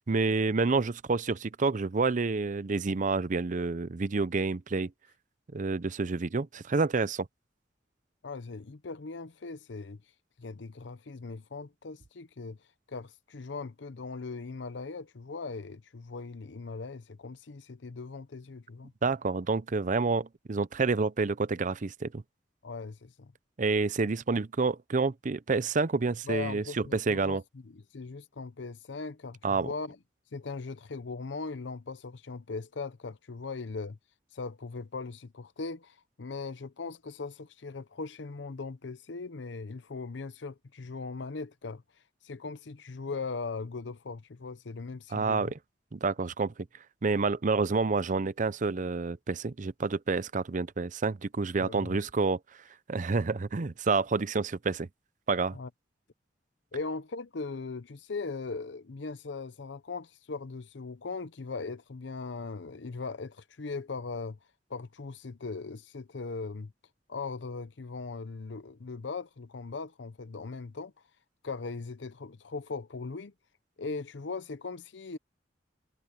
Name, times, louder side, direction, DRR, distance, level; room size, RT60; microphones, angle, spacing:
voice 1, 0.1-4.9 5.5-7.3 19.0-22.2 23.6-27.4 29.4-29.7 45.1-45.5 45.9-46.5 47.0-52.4 52.9-54.9 55.3-55.6, right 4 dB, 45° right, 0.6 m, -28 dB
voice 2, 8.2-10.0 10.4-12.6 12.9-18.9 22.6-23.3 26.2-27.4 27.6-30.0 30.3-34.0 34.3-41.8 42.2-45.5 51.6-52.0 55.5-55.7 56.7-64.4 64.7-66.7 67.1-70.9 71.4-73.3 73.8-75.2, left 4 dB, 75° left, 0.7 m, -39 dB
head